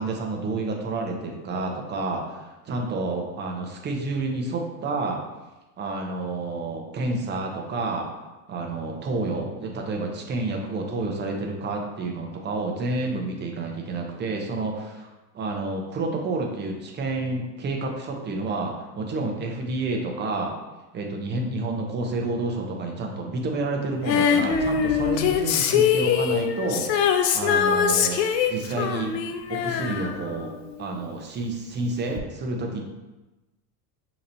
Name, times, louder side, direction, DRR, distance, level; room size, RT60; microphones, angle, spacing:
voice 1, 0.0-5.2 5.8-8.0 8.5-20.5 20.9-28.2 28.5-29.1 29.5-30.5 30.8-32.8, right 2 dB, 20° right, 1 dB, 0.7 m, -29 dB
Female singing, 24.1-31.0 32.2-32.3, left 7 dB, 90° left, 0.6 m, -23 dB
6.5 x 2.9 x 2.6 m, 1.1 s
supercardioid pair, 125°, 48 cm